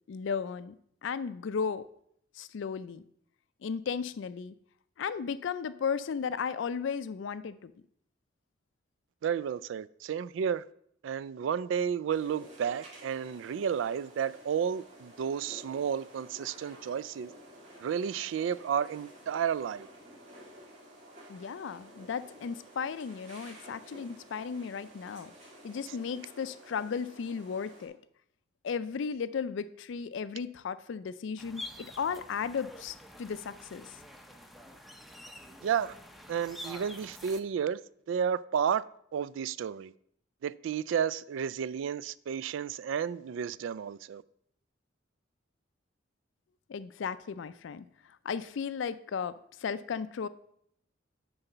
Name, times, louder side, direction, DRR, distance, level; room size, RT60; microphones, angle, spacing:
voice 1, 0.1-0.7 1.0-1.8 2.4-3.0 3.6-4.5 5.0-7.7 21.3-25.3 25.6-27.9 28.6-33.9 46.7-47.8 48.2-50.3, left 6 dB, 70° left, 0.4 m, -35 dB
voice 2, 9.2-10.6 11.0-17.3 17.8-19.9 35.6-36.0 36.3-37.8 38.1-38.8 39.1-39.9 40.4-44.2, right 7 dB, 75° right, 0.3 m, -32 dB
sound 1, 12.1-27.9, right 1 dB, 40° right, 2.3 m, -52 dB
sound 2, 31.4-37.4, left 1 dB, ahead, 0.6 m, -47 dB
9.7 x 4.0 x 5.5 m
head